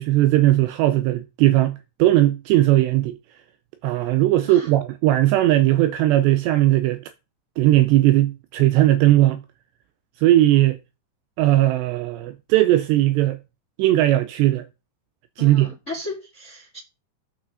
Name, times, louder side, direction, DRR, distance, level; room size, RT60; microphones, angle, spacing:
voice 1, 0.0-3.2 3.8-7.0 7.6-9.4 10.2-10.8 11.4-13.4 13.8-14.7 15.4-15.7, right 15 dB, 85° right, 2.5 m, -18 dB
voice 2, 15.4-16.8, left 2 dB, 35° left, 1.2 m, -35 dB
8.4 x 6.0 x 6.2 m
omnidirectional pair, 5.5 m